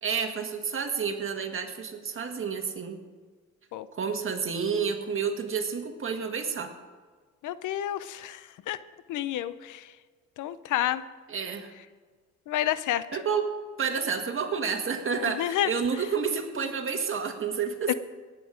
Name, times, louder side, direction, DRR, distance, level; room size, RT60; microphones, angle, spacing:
voice 1, 0.0-3.0 3.9-6.7 11.3-11.7 13.1-13.5 13.8-17.9, right 6 dB, 45° right, 5 dB, 1.8 m, -30 dB
voice 2, 7.4-8.8 9.1-9.8 10.4-11.0 12.5-13.0 15.4-15.7 17.9-18.0, left 12 dB, 80° left, 15 dB, 0.7 m, -29 dB
18.5 x 8.5 x 5.1 m, 1.5 s
cardioid pair, 90°, 30 cm